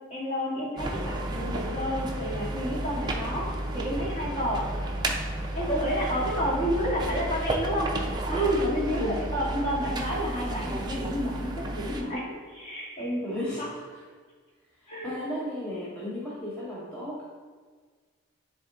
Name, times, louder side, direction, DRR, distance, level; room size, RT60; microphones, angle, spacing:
voice 1, 0.1-4.6 5.5-7.9 8.3-13.7 14.9-15.1, equal, 30° left, -5 dB, 1.8 m, -30 dB
sound 1, 0.8-12.0, right 1 dB, 20° right, 0.5 m, -32 dB
voice 2, 8.9-9.3 13.2-13.6 13.9-14.0 14.8-17.2, left 1 dB, 10° left, -8 dB, 0.8 m, -35 dB
9.6 x 3.5 x 3.8 m, 1.5 s
head